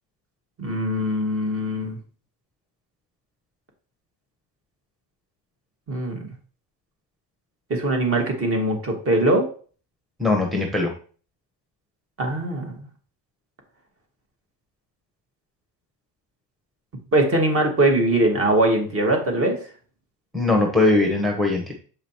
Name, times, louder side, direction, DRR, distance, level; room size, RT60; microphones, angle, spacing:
voice 1, 0.6-2.0 5.9-6.3 7.7-9.5 12.2-12.8 17.1-19.6, right 1 dB, 35° right, 2 dB, 1.8 m, -21 dB
voice 2, 10.2-10.9 20.3-21.7, left 2 dB, ahead, 2 dB, 0.8 m, -20 dB
7.0 x 4.9 x 2.9 m, 0.41 s
cardioid pair, 130°, 41 cm